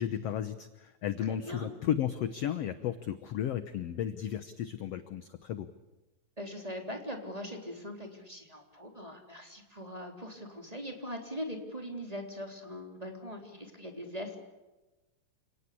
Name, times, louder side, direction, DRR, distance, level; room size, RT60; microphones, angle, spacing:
voice 1, 0.0-5.7, left 10 dB, 65° left, 11 dB, 1.6 m, -34 dB
voice 2, 1.3-1.7 6.4-14.4, equal, 10° right, 3 dB, 3.5 m, -41 dB
29.5 x 18.5 x 8.5 m, 1.1 s
omnidirectional pair, 4.0 m